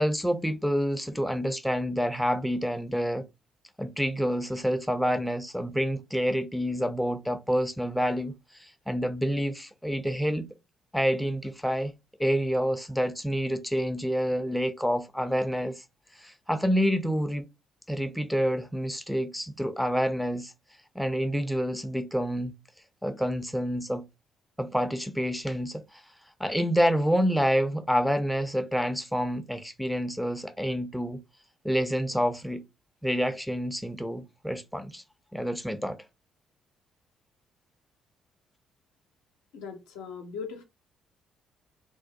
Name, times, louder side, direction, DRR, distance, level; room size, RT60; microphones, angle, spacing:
voice 1, 0.0-3.2 3.8-10.5 10.9-11.9 12.2-15.8 16.2-17.5 17.9-20.5 21.0-22.5 23.0-24.0 24.6-26.0 26.4-31.2 31.6-32.6 33.0-35.0 35.3-36.0, equal, ahead, 0.4 m, -28 dB
voice 2, 39.5-40.6, left 6 dB, 75° left, 0.5 m, -39 dB
2.3 x 2.0 x 2.7 m
hypercardioid pair, 45°, 0 cm